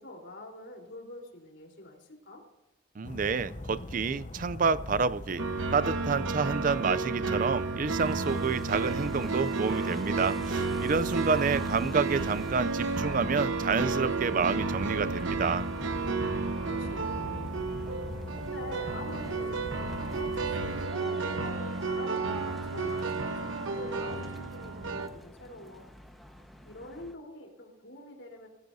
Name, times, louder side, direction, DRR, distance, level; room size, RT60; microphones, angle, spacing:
voice 1, 0.0-2.4 16.7-17.6 18.4-25.9 26.6-28.5, left 1 dB, 70° left, 0 dB, 3.9 m, -45 dB
sound 1, 3.0-20.9, left 2 dB, 40° left, 0.8 m, -41 dB
voice 2, 3.0-5.4 5.7-15.7, right 5 dB, 45° right, 17 dB, 0.4 m, -29 dB
sound 2, 5.4-25.1, right 4 dB, 85° right, 1.1 m, -32 dB
sound 3, 7.9-27.1, equal, ahead, 1.2 m, -49 dB
24.5 x 15.5 x 2.7 m, 0.99 s
head